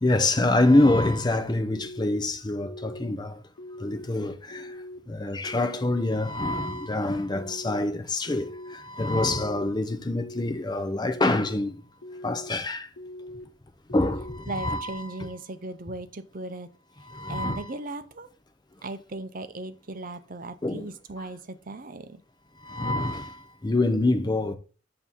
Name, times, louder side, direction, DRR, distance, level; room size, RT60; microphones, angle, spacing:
voice 1, 0.0-3.3 3.8-4.3 5.2-8.4 9.0-11.7 12.2-12.8 13.9-14.2 14.5-15.0 17.2-17.6 20.6-20.8 22.7-23.3 23.6-24.6, left 2 dB, 20° left, 0.5 m, -25 dB
sound 1, 1.7-2.2 2.6-3.1 3.6-4.0 4.5-5.0 5.4-5.9 6.4-6.9 7.3-7.8 8.3-8.7 9.2-9.7 10.1-10.6 11.1-11.6 12.0-12.5 13.0-13.5 13.9-14.4, left 1 dB, 65° left, 1.1 m, -41 dB
voice 2, 14.5-16.7 17.3-18.3 18.8-22.2, right 2 dB, 45° right, 0.6 m, -37 dB
8.4 x 2.8 x 5.3 m
head